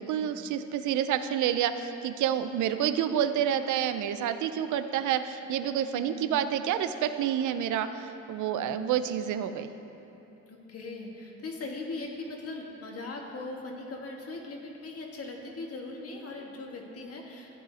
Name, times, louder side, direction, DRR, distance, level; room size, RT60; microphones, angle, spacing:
voice 1, 0.0-9.7, right 9 dB, 75° right, 11 dB, 0.5 m, -29 dB
voice 2, 5.9-6.3 8.5-8.9 10.5-17.6, left 3 dB, 50° left, 0 dB, 1.6 m, -40 dB
14.5 x 9.0 x 2.8 m, 3.0 s
cardioid pair, 90°, 30 cm